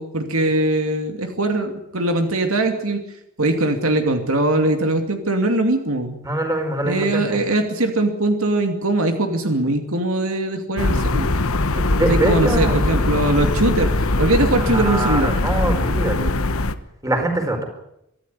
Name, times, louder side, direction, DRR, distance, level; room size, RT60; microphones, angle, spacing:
voice 1, 0.0-3.0 3.4-6.2 6.8-11.3 12.1-13.9 14.2-15.3, right 2 dB, 75° right, 5 dB, 2.5 m, -21 dB
voice 2, 6.2-7.4 11.7-12.8 14.6-16.3 17.0-17.6, right 1 dB, 15° right, 4 dB, 4.6 m, -23 dB
sound 1, 10.8-16.7, left 2 dB, 75° left, 1.3 m, -21 dB
24.5 x 13.5 x 9.9 m, 0.83 s
head